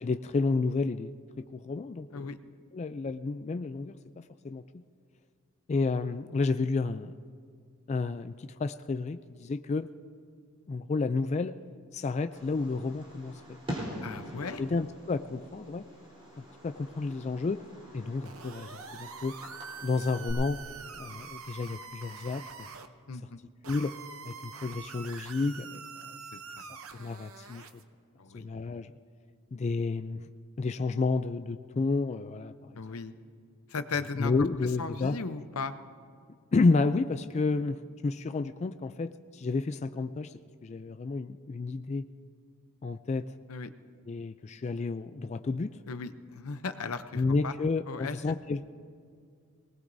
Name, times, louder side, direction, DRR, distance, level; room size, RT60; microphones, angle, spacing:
voice 1, 0.0-1.1 1.4-2.3 2.7-4.6 5.7-7.1 7.9-9.9 10.7-11.6 11.9-13.6 13.8-14.1 14.6-15.9 16.6-17.6 17.9-19.3 19.8-20.6 20.9-22.4 23.7-24.0 24.2-25.8 27.0-27.6 28.3-28.9 29.5-30.2 30.6-32.7 34.2-35.2 36.5-40.3 40.6-42.1 42.8-43.3 44.1-45.8 47.2-48.7, left 3 dB, 30° left, 10 dB, 0.3 m, -31 dB
Fireworks, 12.3-20.3, equal, 25° right, 3.6 m, -44 dB
voice 2, 14.0-14.6 23.1-23.4 26.3-26.6 28.2-28.5 32.8-33.1 33.7-34.3 34.8-35.7 43.5-43.7 45.9-47.5 47.9-48.4, left 4 dB, 85° left, 11 dB, 0.7 m, -37 dB
sound 1, 18.2-22.9 23.6-27.8, right 5 dB, 75° right, 0.8 m, -45 dB
23.0 x 19.5 x 2.7 m, 2.2 s
head